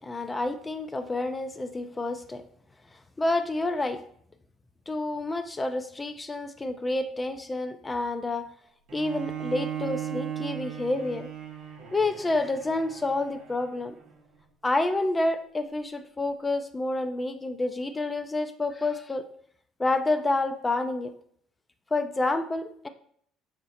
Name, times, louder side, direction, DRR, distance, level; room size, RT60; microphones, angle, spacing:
voice 1, 0.0-2.4 3.2-4.0 4.9-8.5 8.9-11.3 11.9-14.0 14.6-19.3 19.8-21.1 21.9-22.9, left 2 dB, 25° left, 8 dB, 0.5 m, -29 dB
Bowed string instrument, 8.9-14.1, right 9 dB, 65° right, 0.8 m, -37 dB
5.0 x 2.0 x 4.2 m, 0.64 s
hypercardioid pair, 65°, 0 cm